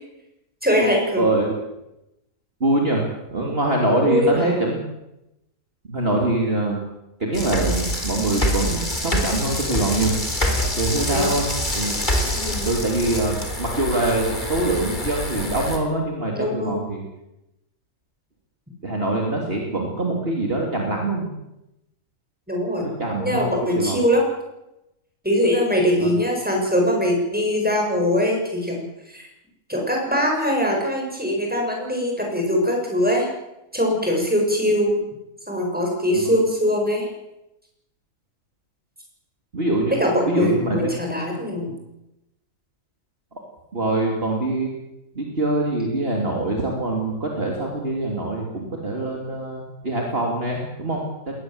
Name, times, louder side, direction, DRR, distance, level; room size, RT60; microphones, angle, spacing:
voice 1, 0.6-1.2 4.0-4.6 11.1-11.3 12.3-12.7 16.3-16.8 22.5-22.9 23.2-24.2 25.2-29.2 29.7-33.3 33.7-34.9 35.5-37.1 40.0-41.7, equal, 5° right, 0 dB, 7.6 m, -22 dB
voice 2, 1.2-1.5 2.6-3.0 3.3-4.8 5.9-6.8 7.2-10.1 10.8-11.4 11.8-12.0 12.6-17.0 18.8-21.3 22.8-24.0 26.0-26.2 36.1-36.3 39.5-40.0 40.2-40.9 43.7-44.7 45.2-51.3, right 2 dB, 40° right, 0 dB, 3.5 m, -24 dB
sound 1, 7.3-15.8, left 1 dB, 30° left, 4.1 m, -26 dB
21.0 x 20.0 x 8.1 m, 0.92 s
omnidirectional pair, 1.6 m